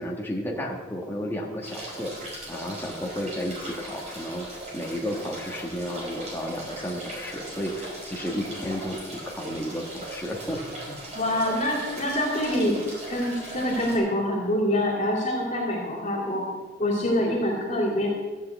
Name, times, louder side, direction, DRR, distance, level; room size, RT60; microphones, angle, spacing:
voice 1, 0.0-2.1 2.5-4.5 4.7-11.0, equal, 10° left, -1 dB, 1.5 m, -32 dB
sound 1, 1.6-14.0, right 1 dB, 40° right, 5.3 m, -39 dB
voice 2, 11.1-12.8 13.1-16.5 16.8-18.1, left 1 dB, 40° left, -4 dB, 2.9 m, -25 dB
14.5 x 6.5 x 8.2 m, 1.3 s
head